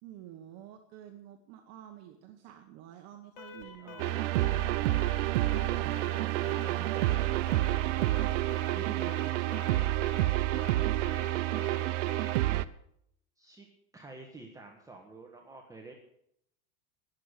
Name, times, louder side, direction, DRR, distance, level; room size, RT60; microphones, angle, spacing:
voice 1, 0.0-4.3 5.8-6.4, right 11 dB, 45° right, 4 dB, 1.3 m, -49 dB
Alarm, 3.4-12.6, left 5 dB, 70° left, 2.9 m, -48 dB
voice 2, 3.8-5.1 5.5-8.5 8.7-12.3 13.4-13.7 13.9-15.9, right 3 dB, 10° right, 1 dB, 1.5 m, -49 dB
sound 1, 4.0-12.6, right 16 dB, 80° right, 0.7 m, -29 dB
19.0 x 7.4 x 6.6 m, 0.74 s
supercardioid pair, 135°, 36 cm